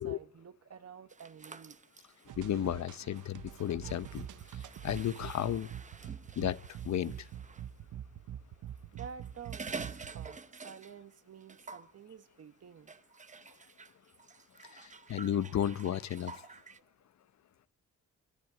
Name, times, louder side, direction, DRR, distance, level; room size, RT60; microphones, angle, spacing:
voice 1, 0.0-1.8 8.9-12.9 16.8-16.9, right 7 dB, 55° right, 1.4 m, -50 dB
sound 1, 1.1-7.7 8.8-11.1 11.4-11.9 12.9-16.8, right 4 dB, 25° right, 0.8 m, -49 dB
sound 2, 2.3-10.3, right 10 dB, 90° right, 0.9 m, -45 dB
voice 2, 2.4-4.3 4.8-5.7 6.4-6.6 6.8-7.3 14.7-16.4, left 10 dB, 65° left, 0.8 m, -33 dB
24.5 x 13.5 x 9.2 m
cardioid pair, 105°, 30 cm